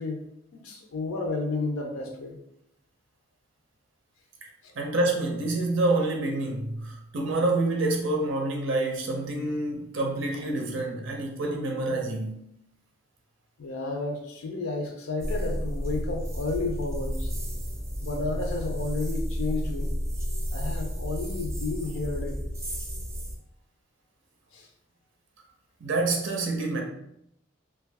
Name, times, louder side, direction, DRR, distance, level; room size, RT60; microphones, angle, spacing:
voice 1, 0.0-2.4 4.6-4.7 13.6-17.3 18.0-19.9 20.5-22.4 24.5-24.7, left 3 dB, 80° left, 2 dB, 0.5 m, -32 dB
voice 2, 4.8-12.4 25.8-26.8, right 2 dB, 70° right, 1 dB, 0.5 m, -27 dB
sound 1, 15.2-23.4, equal, 15° right, 0.4 m, -31 dB
2.7 x 2.2 x 3.3 m, 0.80 s
head